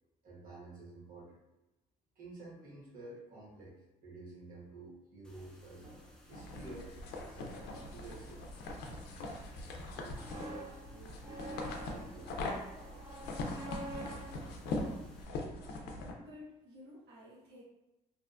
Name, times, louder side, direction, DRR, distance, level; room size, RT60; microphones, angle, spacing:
voice 1, 0.2-1.4 2.1-5.9 6.3-7.6 7.9-8.4 9.9-12.4, right 2 dB, 55° right, -5 dB, 1.1 m, -51 dB
sound 1, 5.2-15.2, equal, 5° left, 0.5 m, -60 dB
sound 2, 5.7-15.7, right 1 dB, 20° right, 0.8 m, -49 dB
sound 3, 6.3-16.1, left 2 dB, 80° left, 0.5 m, -42 dB
voice 2, 16.2-17.6, left 2 dB, 85° right, -8 dB, 0.8 m, -53 dB
2.7 x 2.2 x 2.4 m, 0.98 s
cardioid pair, 110°, 17 cm